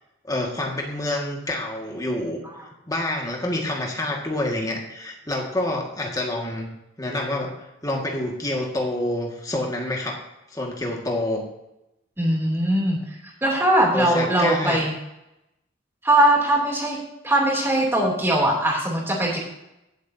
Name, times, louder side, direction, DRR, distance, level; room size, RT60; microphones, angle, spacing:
voice 1, 0.2-2.4 2.9-6.7 7.0-10.2 10.5-11.4 13.9-14.9, left 1 dB, 20° left, 0 dB, 1.9 m, -27 dB
voice 2, 12.2-13.1 13.4-14.9 16.0-17.0 17.2-19.4, right 1 dB, 10° right, -3 dB, 3.0 m, -20 dB
18.0 x 8.1 x 2.8 m, 0.89 s
head